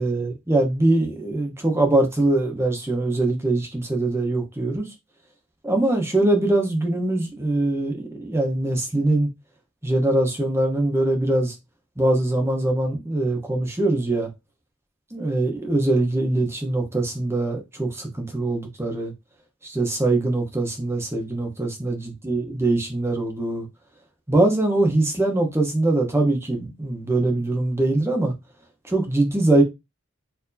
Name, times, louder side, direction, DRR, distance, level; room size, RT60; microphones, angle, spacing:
voice 1, 0.0-4.9 5.6-9.3 9.8-11.5 12.0-14.3 15.1-19.1 19.6-23.7 24.3-28.3 28.8-29.6, right 2 dB, 10° right, 0.8 m, -22 dB
4.5 x 2.7 x 2.6 m
head